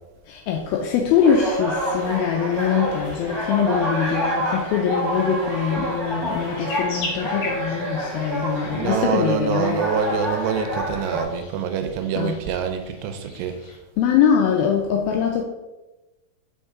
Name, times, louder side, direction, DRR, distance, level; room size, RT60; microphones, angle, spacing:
voice 1, 0.3-9.9 11.1-11.2 12.1-12.3 14.0-15.4, left 7 dB, 85° left, 2 dB, 2.1 m, -22 dB
sound 1, 1.0-13.8, left 2 dB, 65° left, 3.1 m, -41 dB
sound 2, 1.2-11.2, right 1 dB, 25° right, 1.2 m, -28 dB
voice 2, 8.7-13.6, right 7 dB, 85° right, 7 dB, 2.7 m, -25 dB
5.7 x 5.3 x 3.6 m, 1.0 s
omnidirectional pair, 4.8 m